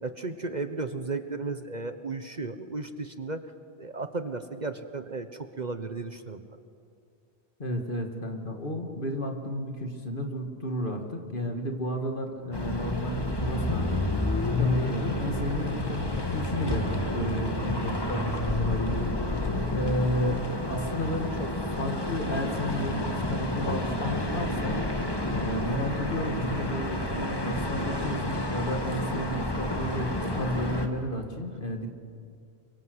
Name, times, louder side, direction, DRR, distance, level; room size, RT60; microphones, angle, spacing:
voice 1, 0.0-3.4 3.8-6.4 21.4-21.7, right 3 dB, 40° right, 9 dB, 1.2 m, -34 dB
voice 2, 7.6-14.0 14.6-19.4 19.7-21.5 21.8-24.8 25.3-31.9, equal, 50° left, 4 dB, 2.4 m, -32 dB
sound 1, 12.5-30.9, left 1 dB, 20° left, 1.8 m, -30 dB
Insect, 14.9-15.0 15.4-16.8 18.4-20.1, left 1 dB, 20° right, 3.5 m, -39 dB
28.5 x 24.0 x 8.1 m, 2.4 s
omnidirectional pair, 1.1 m